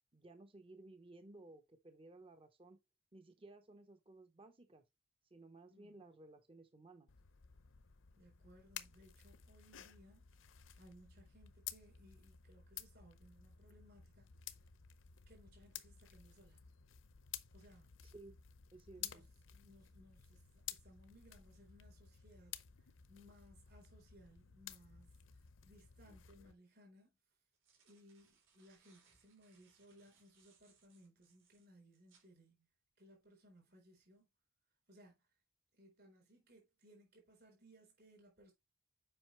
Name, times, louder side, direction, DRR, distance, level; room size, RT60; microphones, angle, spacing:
voice 1, 0.1-2.8 3.1-4.8 5.3-7.1 18.0-18.4 18.7-19.2, right 2 dB, 25° right, 0.7 m, -58 dB
voice 2, 5.7-6.1 8.2-14.3 15.3-16.7 17.5-17.9 19.0-19.2 19.5-27.1 27.8-32.7 33.0-34.2 34.9-35.3 35.8-38.5, equal, 50° right, 4.1 m, -64 dB
sound 1, 7.1-26.5, left 11 dB, 75° left, 0.7 m, -54 dB
sound 2, 27.3-32.3, right 6 dB, 80° right, 3.6 m, -73 dB
7.7 x 5.3 x 3.1 m
head